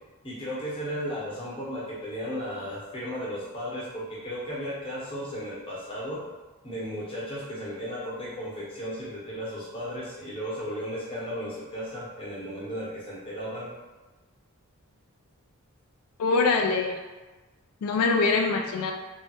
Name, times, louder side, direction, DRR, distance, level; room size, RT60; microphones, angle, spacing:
voice 1, 0.2-6.3 6.6-13.7, equal, 25° left, -7 dB, 0.8 m, -35 dB
voice 2, 16.2-16.9 17.8-18.9, left 4 dB, 85° left, 3 dB, 0.3 m, -23 dB
3.1 x 2.2 x 2.8 m, 1.2 s
head